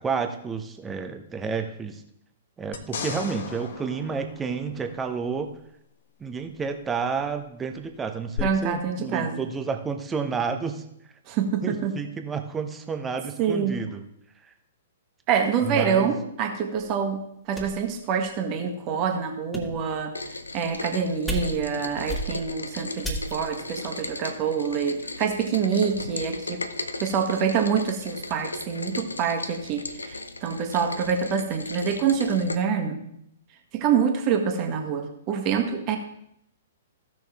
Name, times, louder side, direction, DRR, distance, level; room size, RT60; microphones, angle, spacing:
voice 1, 0.0-2.0 2.6-5.5 6.2-10.8 11.6-14.0 15.6-16.1, right 5 dB, 15° right, 6 dB, 1.0 m, -30 dB
sound 1, 2.7-5.2 8.4-8.5, left 6 dB, 60° left, 1.1 m, -36 dB
voice 2, 8.4-9.4 11.3-11.9 13.4-13.8 15.3-20.1 20.5-26.6 27.0-33.0 33.7-36.0, right 6 dB, 35° right, 3 dB, 1.7 m, -26 dB
sound 2, 16.8-16.9 17.6-17.9 18.6-18.7 19.3-19.9 20.6-20.9 21.3-21.8 22.1-22.6 23.0-23.5, right 1 dB, 5° left, 2.1 m, -33 dB
Rain, 20.1-32.6, left 2 dB, 85° left, 0.7 m, -36 dB
15.5 x 6.2 x 3.6 m, 0.75 s
figure-of-eight pair, 115°, 0 cm